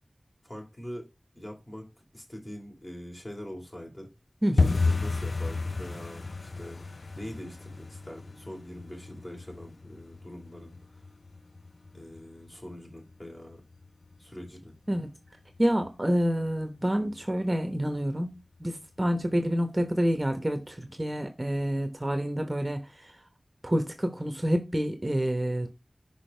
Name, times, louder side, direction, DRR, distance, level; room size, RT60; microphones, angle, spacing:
voice 1, 0.4-1.1 1.3-1.9 2.1-4.1 4.5-6.8 7.1-10.8 11.9-13.6 14.2-14.7, equal, 30° left, 3.5 m, -43 dB
voice 2, 4.4-4.8 14.9-15.1 15.6-23.1 23.6-25.7, equal, 25° right, 1.1 m, -28 dB
sound 1, 4.6-15.3 15.5-16.3 16.5-16.8 17.1-17.5 17.7-17.9 18.4-18.9 19.2-19.3 19.8-19.9, left 3 dB, 70° left, 0.5 m, -33 dB
6.2 x 5.3 x 3.4 m
wide cardioid pair, 55°, 0 cm